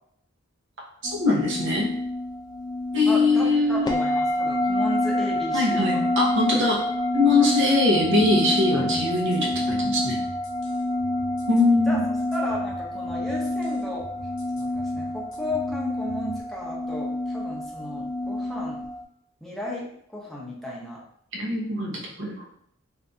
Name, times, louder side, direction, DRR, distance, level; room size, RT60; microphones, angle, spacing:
sound 1, 1.0-19.0, left 1 dB, 20° left, 0.4 m, -28 dB
voice 1, 1.1-1.9 2.9-3.9 5.5-6.8 7.1-10.2 11.5-12.1 21.3-22.3, left 2 dB, 65° right, -1 dB, 0.9 m, -22 dB
voice 2, 3.1-6.0 6.5-6.7 7.2-7.7 11.9-12.0 12.3-14.1 14.5-18.8 19.4-21.0, left 1 dB, ahead, -4 dB, 0.7 m, -34 dB
sound 2, 8.0-16.4, left 1 dB, 65° left, 0.9 m, -45 dB
2.6 x 2.6 x 3.4 m, 0.69 s
head